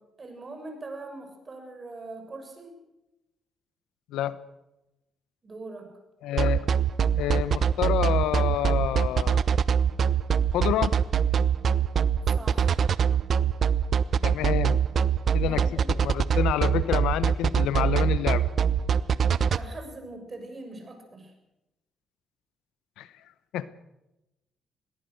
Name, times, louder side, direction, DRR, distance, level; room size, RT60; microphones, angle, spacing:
voice 1, 0.2-2.7 5.4-5.9 12.3-12.8 15.4-16.0 19.5-21.3, right 2 dB, 30° right, 5 dB, 6.8 m, -42 dB
voice 2, 6.2-6.7 7.2-9.4 10.5-11.0 14.2-14.8 15.3-18.4 23.0-23.1 23.5-23.7, left 12 dB, 90° left, 15 dB, 0.9 m, -28 dB
sound 1, 6.4-19.6, right 7 dB, 55° right, 0.8 m, -23 dB
22.0 x 19.0 x 6.6 m, 0.92 s
cardioid pair, 90°, 0 cm